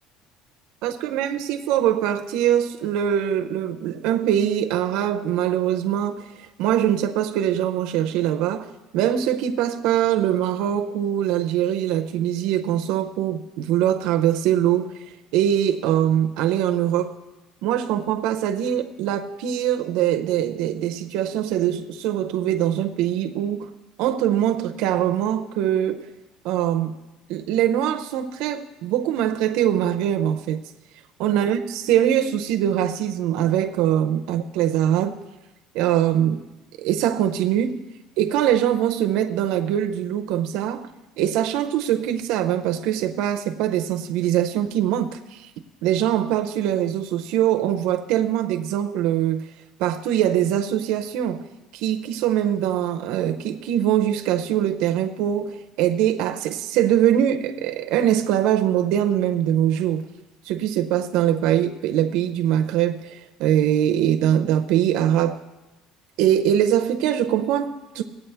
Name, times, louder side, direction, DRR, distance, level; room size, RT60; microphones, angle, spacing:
voice 1, 0.8-14.9 15.3-17.1 17.6-23.7 24.0-26.1 26.4-26.9 27.3-30.6 31.2-35.2 35.7-36.4 36.8-37.8 38.2-40.9 41.2-45.5 45.8-49.4 49.8-51.5 51.7-60.0 60.5-65.4 66.2-68.0, right 10 dB, 70° right, 6 dB, 0.6 m, -22 dB
17.5 x 8.5 x 3.4 m, 1.0 s
cardioid pair, 165°, 0 cm